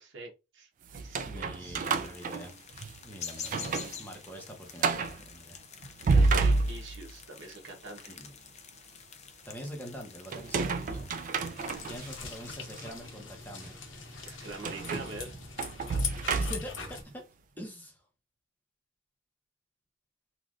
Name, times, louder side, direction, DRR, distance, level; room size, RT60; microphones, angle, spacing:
voice 1, 0.0-1.8 6.1-8.2 10.5-10.9 14.3-15.4, right 3 dB, 75° right, 1.0 m, -45 dB
sound 1, 0.9-3.0 3.4-4.0 4.3-4.4 4.8-5.2 5.8-7.2 10.3-12.1 12.7-12.9 14.6-16.9, right 3 dB, 45° right, 0.3 m, -29 dB
voice 2, 1.2-2.5 3.0-5.6 6.1-6.2 8.1-8.3 9.4-11.2 11.8-13.7 16.4-17.2 17.6-18.0, equal, 10° left, 0.8 m, -44 dB
sound 2, 1.8-12.4, left 7 dB, 40° left, 0.5 m, -47 dB
sound 3, 11.6-17.0, left 6 dB, 80° left, 0.7 m, -41 dB
3.1 x 2.4 x 2.5 m
head